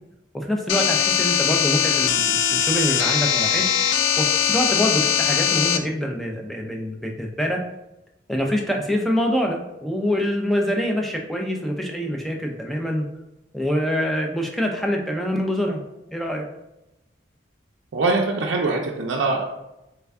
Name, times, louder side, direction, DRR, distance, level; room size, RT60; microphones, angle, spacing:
voice 1, 0.3-3.7 4.2-7.6 8.3-13.1 13.5-15.8 16.1-16.5, equal, ahead, 1 dB, 0.4 m, -25 dB
sound 1, 0.7-5.8, left 8 dB, 75° left, 0.3 m, -21 dB
voice 2, 17.9-19.4, right 3 dB, 75° right, -1 dB, 0.4 m, -22 dB
3.3 x 2.2 x 3.4 m, 0.93 s
head